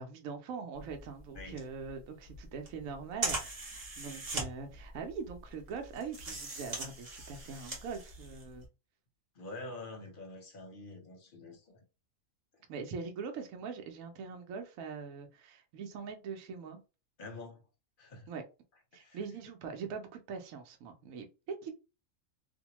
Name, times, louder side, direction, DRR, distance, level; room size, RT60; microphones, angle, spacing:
voice 1, 0.0-8.6 12.7-16.8 18.3-18.4 18.9-21.7, right 5 dB, 70° right, 1.0 m, -42 dB
sound 1, 0.8-8.7, right 2 dB, 35° right, 0.8 m, -41 dB
voice 2, 9.3-11.8 17.2-17.6 18.0-18.3 18.9-19.2, left 2 dB, 45° left, 0.8 m, -46 dB
2.6 x 2.1 x 2.9 m
omnidirectional pair, 1.5 m